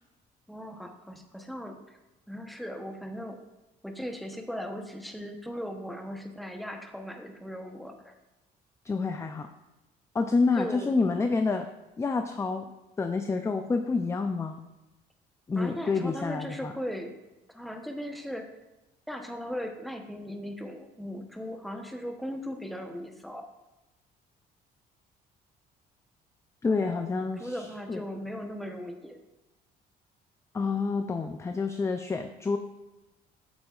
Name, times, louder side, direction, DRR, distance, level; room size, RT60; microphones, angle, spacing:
voice 1, 0.5-2.0 2.3-3.4 3.8-8.2 10.6-11.4 15.6-17.1 17.5-18.5 19.1-23.5 26.7-29.2, equal, ahead, 4 dB, 0.9 m, -38 dB
voice 2, 8.8-9.5 10.1-11.7 12.0-12.7 13.0-14.6 15.5-16.7 26.6-28.0 30.5-32.6, left 4 dB, 15° left, 7 dB, 0.4 m, -28 dB
8.1 x 7.8 x 2.4 m, 1.0 s
cardioid pair, 110°, 17 cm